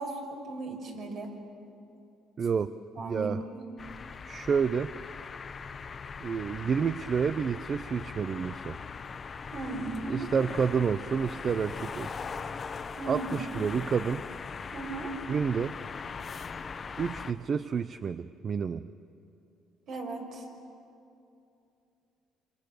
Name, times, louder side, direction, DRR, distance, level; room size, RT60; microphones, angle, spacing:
voice 1, 0.0-1.3 2.9-3.6 9.5-10.3 13.0-13.5 14.7-15.1 19.9-20.4, right 3 dB, 60° right, 1 dB, 5.8 m, -37 dB
voice 2, 2.4-2.7 3.0-3.4 4.2-4.9 6.2-8.8 10.1-12.2 13.1-14.2 15.3-15.8 17.0-18.9, right 6 dB, 40° right, 13 dB, 0.6 m, -29 dB
sound 1, 3.8-17.3, left 5 dB, 35° left, 1.0 m, -40 dB
27.0 x 26.5 x 6.8 m, 2.6 s
cardioid pair, 110°, 0 cm